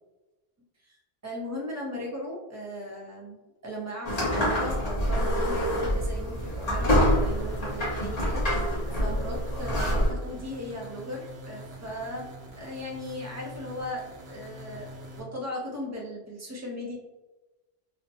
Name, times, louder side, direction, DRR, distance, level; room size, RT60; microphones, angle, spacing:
voice 1, 0.8-3.4 3.6-12.3 12.6-14.9 15.2-16.9, equal, 20° right, -3 dB, 0.6 m, -37 dB
sound 1, 4.1-10.1, equal, 40° left, 1.0 m, -26 dB
sound 2, 6.4-15.2, equal, 85° right, 1.0 m, -45 dB
3.0 x 2.1 x 2.8 m, 1.1 s
omnidirectional pair, 1.0 m